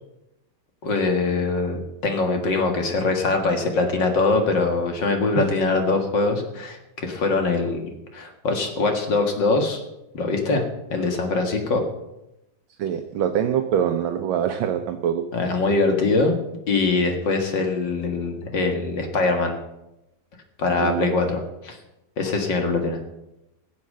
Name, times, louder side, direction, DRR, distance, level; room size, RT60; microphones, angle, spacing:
voice 1, 0.8-9.8 10.1-10.6 10.9-11.8 15.3-16.4 16.7-19.6 20.6-21.8 22.2-23.0, left 3 dB, 60° left, 4 dB, 2.5 m, -23 dB
voice 2, 12.8-15.2 20.8-21.1, right 9 dB, 70° right, 6 dB, 1.5 m, -24 dB
16.0 x 7.5 x 7.6 m, 0.90 s
omnidirectional pair, 2.3 m